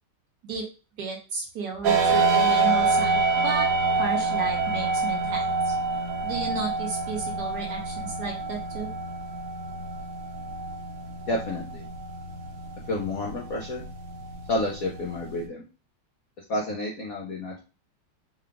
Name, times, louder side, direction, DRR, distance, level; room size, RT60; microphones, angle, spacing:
voice 1, 1.0-5.7 6.2-8.9, right 4 dB, 60° right, 0 dB, 1.3 m, -33 dB
sound 1, 1.8-15.5, right 3 dB, 85° right, 1.6 m, -27 dB
voice 2, 11.3-11.8 12.9-13.8 14.5-15.6 16.5-17.6, left 2 dB, 65° left, -2 dB, 0.9 m, -30 dB
4.9 x 2.4 x 3.4 m, 0.34 s
omnidirectional pair, 2.3 m